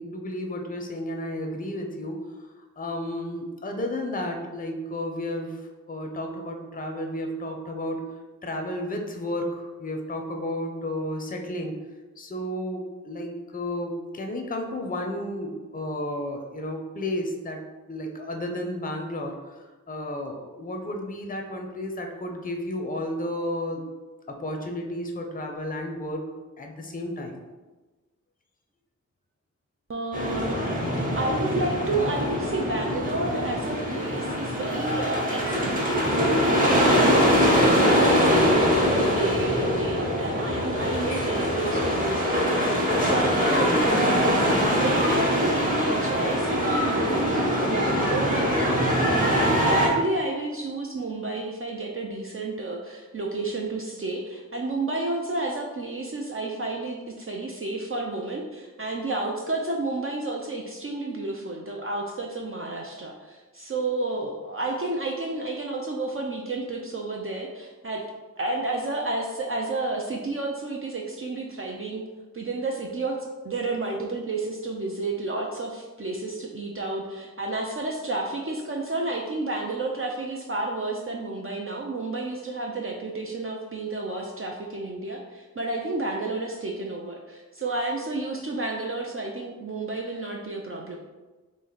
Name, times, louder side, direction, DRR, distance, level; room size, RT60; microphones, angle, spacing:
voice 1, 0.0-2.5 2.8-5.6 5.9-8.1 8.4-11.8 12.2-17.6 17.9-23.8 24.3-26.3 26.6-27.4, left 1 dB, 25° left, 3 dB, 0.5 m, -32 dB
voice 2, 29.9-30.6 30.9-44.5 44.8-68.0 68.4-72.0 72.3-73.2 73.4-91.0, right 2 dB, 45° right, -1 dB, 0.4 m, -31 dB
sound 1, 30.1-49.9, equal, 25° right, 0.9 m, -23 dB
3.2 x 2.5 x 3.8 m, 1.2 s
wide cardioid pair, 50°, 32 cm